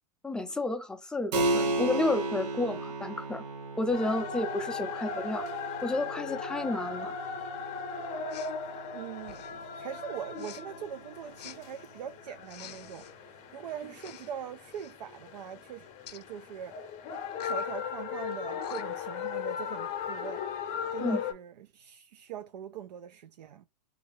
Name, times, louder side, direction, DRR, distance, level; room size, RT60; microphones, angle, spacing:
voice 1, 0.2-3.4 3.8-5.5 5.8-7.1 21.0-21.2, left 2 dB, 5° left, 0.4 m, -31 dB
Keyboard (musical), 1.3-11.5, right 2 dB, 45° right, 0.9 m, -35 dB
sound 1, 3.9-21.3, left 6 dB, 35° left, 0.7 m, -38 dB
Respiratory sounds, 8.3-8.6 9.2-9.6 10.4-10.6 11.4-11.6 12.4-13.1 13.9-14.3 14.6-14.9 16.1-16.2 17.3-17.7 18.3-18.4 18.6-19.1, left 11 dB, 70° left, 0.5 m, -48 dB
voice 2, 8.9-16.8 17.4-20.5 20.9-23.7, right 9 dB, 75° right, 0.4 m, -42 dB
2.9 x 2.5 x 3.0 m
hypercardioid pair, 115°, 21 cm